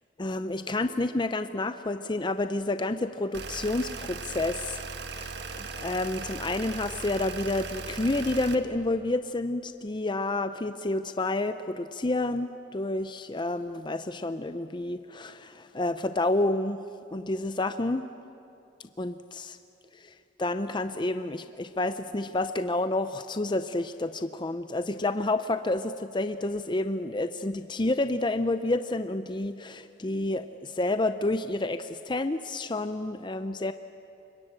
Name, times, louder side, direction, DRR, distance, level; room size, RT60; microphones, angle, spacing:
voice 1, 0.2-4.8 5.1-5.3 5.6-16.8 17.1-18.1 19.0-19.6 20.0-20.1 20.4-33.7, left 2 dB, 25° left, 10 dB, 0.6 m, -29 dB
sound 1, 3.3-8.6, right 4 dB, 65° right, 1.4 m, -38 dB
25.0 x 22.0 x 8.9 m, 2.6 s
head